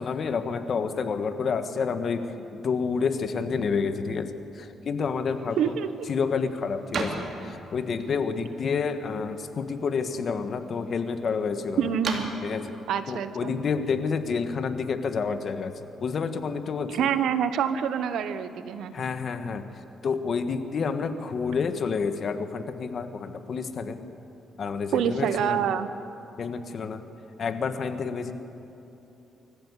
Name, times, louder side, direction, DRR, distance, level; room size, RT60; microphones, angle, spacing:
voice 1, 0.0-5.7 6.1-11.9 12.4-12.8 13.1-17.1 18.9-19.7 20.0-24.0 24.6-25.7 26.4-27.0 27.4-28.3, left 5 dB, 50° left, 9 dB, 1.5 m, -29 dB
sound 1, 5.3-14.4, right 3 dB, 50° right, 2.9 m, -40 dB
voice 2, 5.6-6.1 11.8-12.3 12.9-13.5 16.9-18.9 24.9-25.9, right 8 dB, 80° right, 12 dB, 1.1 m, -26 dB
24.5 x 14.5 x 8.3 m, 2.9 s
cardioid pair, 90°, 0 cm